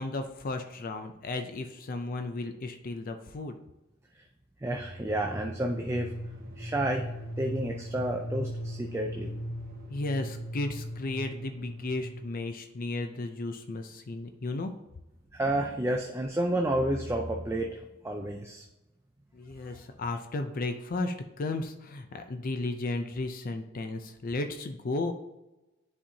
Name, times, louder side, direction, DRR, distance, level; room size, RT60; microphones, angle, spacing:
voice 1, 0.0-3.6 9.9-14.7 19.3-25.1, left 2 dB, 45° left, 6 dB, 0.5 m, -34 dB
voice 2, 4.6-6.1 6.6-7.1 7.4-9.3 15.3-18.6, right 1 dB, 15° right, 2 dB, 0.4 m, -30 dB
sound 1, 4.7-12.5, equal, 45° right, 1.0 m, -39 dB
10.0 x 4.3 x 2.8 m, 0.99 s
head